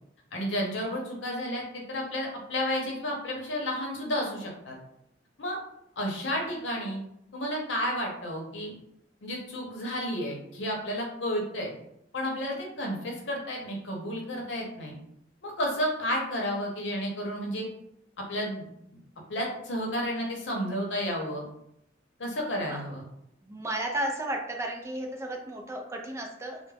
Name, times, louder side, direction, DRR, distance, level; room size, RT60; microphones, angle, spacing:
voice 1, 0.3-4.8 5.4-5.6 6.0-7.0 7.3-8.7 9.2-11.7 12.1-15.0 15.4-17.7 18.3-18.6 19.3-21.4 22.2-23.0, equal, 70° left, -1 dB, 0.7 m, -31 dB
voice 2, 23.4-26.6, right 1 dB, 15° right, 1 dB, 0.3 m, -33 dB
2.3 x 2.0 x 3.2 m, 0.76 s
head